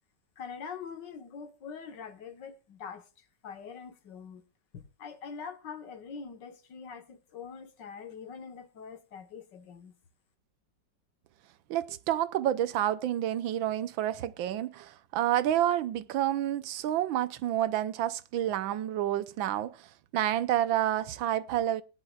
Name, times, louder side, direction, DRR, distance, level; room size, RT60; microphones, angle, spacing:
voice 1, 0.4-4.4 4.7-9.9, left 6 dB, 65° left, 1.9 m, -44 dB
voice 2, 11.7-19.8 20.1-21.8, right 12 dB, 85° right, 1.5 m, -29 dB
20.0 x 10.5 x 2.4 m
omnidirectional pair, 2.1 m